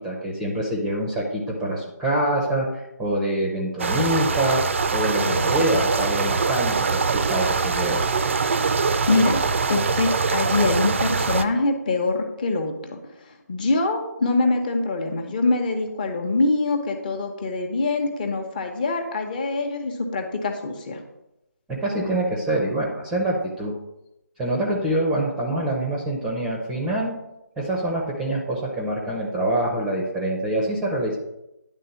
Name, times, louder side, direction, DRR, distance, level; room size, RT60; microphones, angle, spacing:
voice 1, 0.0-4.6 4.9-8.0 21.7-23.7 24.4-27.2 27.6-31.2, right 1 dB, 5° right, -2 dB, 0.7 m, -25 dB
sound 1, 3.8-11.4, right 4 dB, 40° right, 0.5 m, -23 dB
voice 2, 5.2-5.7 9.1-9.4 9.7-13.0 13.5-21.0, left 3 dB, 25° left, 4 dB, 1.0 m, -24 dB
10.0 x 3.7 x 7.0 m, 0.88 s
figure-of-eight pair, 160°, 10 cm